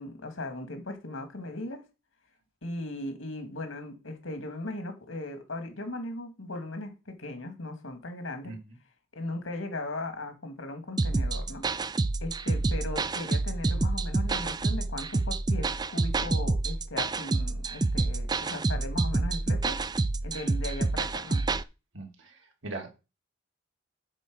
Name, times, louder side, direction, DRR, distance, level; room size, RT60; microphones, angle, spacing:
voice 1, 0.0-1.8 2.6-8.6 9.1-11.7 12.2-19.8 20.2-21.4, left 2 dB, 85° left, 2.2 m, -38 dB
sound 1, 11.0-21.6, right 3 dB, 20° right, 0.4 m, -28 dB
voice 2, 21.9-22.9, right 2 dB, 75° right, 2.4 m, -40 dB
9.0 x 4.5 x 6.2 m
head